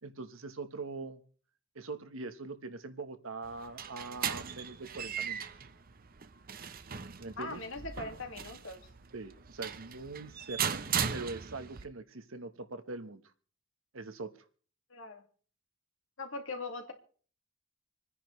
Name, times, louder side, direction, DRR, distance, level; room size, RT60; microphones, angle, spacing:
voice 1, 0.0-1.2 1.7-5.4 7.2-7.6 9.1-10.8 11.1-13.2 13.9-14.3, right 3 dB, 75° right, 9 dB, 1.2 m, -42 dB
sound 1, 3.4-11.8, right 7 dB, 45° right, 0.7 m, -38 dB
voice 2, 7.4-8.9 14.9-15.2 16.2-16.9, left 3 dB, 70° left, 4 dB, 2.1 m, -41 dB
27.5 x 9.9 x 3.2 m, 0.43 s
head